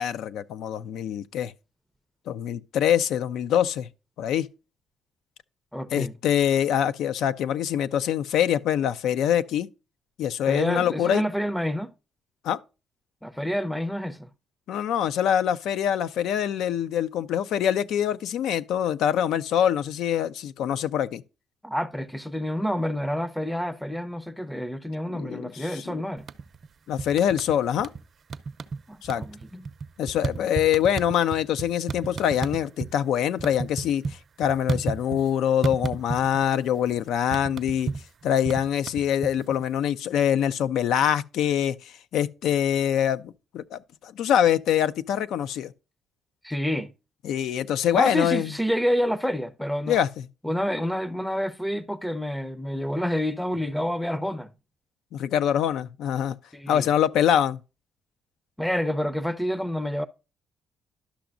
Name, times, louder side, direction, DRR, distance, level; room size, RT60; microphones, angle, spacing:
voice 1, 0.0-1.5 2.3-3.9 4.2-4.5 5.9-9.7 10.2-11.2 12.4-12.6 14.7-21.2 25.1-26.0 26.9-27.9 29.0-29.2 30.0-34.0 34.4-37.9 38.2-41.8 42.1-45.7 47.2-48.5 49.9-50.1 55.1-56.4 56.7-57.6, left 9 dB, 80° left, 0.4 m, -24 dB
voice 2, 5.7-6.1 10.5-11.9 13.2-14.3 21.6-26.3 28.9-29.7 46.4-46.9 47.9-50.0 50.4-54.5 56.5-56.9 58.6-60.1, equal, 5° left, 0.5 m, -28 dB
sound 1, 26.2-26.7 27.0-28.0 28.3-28.8 29.0-32.9 33.2-35.3 35.6-36.5 36.7-39.6, right 5 dB, 50° right, 0.5 m, -32 dB
11.5 x 6.0 x 2.5 m
cardioid pair, 90°, 0 cm